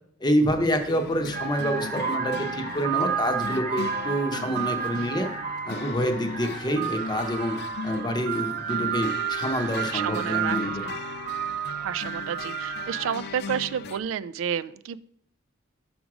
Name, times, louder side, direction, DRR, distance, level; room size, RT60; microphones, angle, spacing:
voice 1, 0.2-5.3 5.7-10.8, equal, 20° left, 6 dB, 0.7 m, -27 dB
sound 1, 0.8-14.0, left 5 dB, 55° left, 0.3 m, -39 dB
sound 2, 0.8-0.9 1.2-13.3, right 7 dB, 50° right, 1.0 m, -31 dB
voice 2, 1.1-1.4 4.3-4.6 4.9-5.1 9.9-10.9 11.8-15.0, right 8 dB, 85° right, 17 dB, 0.3 m, -31 dB
6.0 x 5.1 x 4.8 m, 0.64 s
head